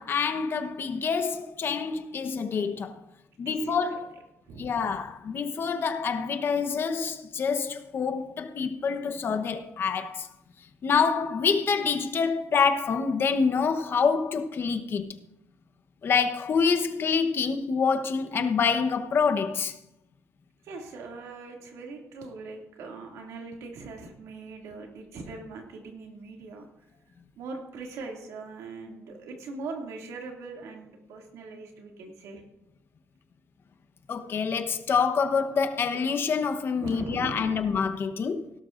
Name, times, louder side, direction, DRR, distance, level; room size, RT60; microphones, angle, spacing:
voice 1, 0.0-3.0 3.4-4.1 4.6-10.3 10.8-15.2 16.0-19.7 34.1-38.5, left 5 dB, 45° left, 1.1 m, -26 dB
voice 2, 3.4-4.0 4.5-5.0 20.6-26.7 27.4-32.4 36.8-37.7, right 3 dB, 90° right, 2.5 m, -41 dB
17.5 x 12.5 x 2.6 m
cardioid pair, 115°, 5 cm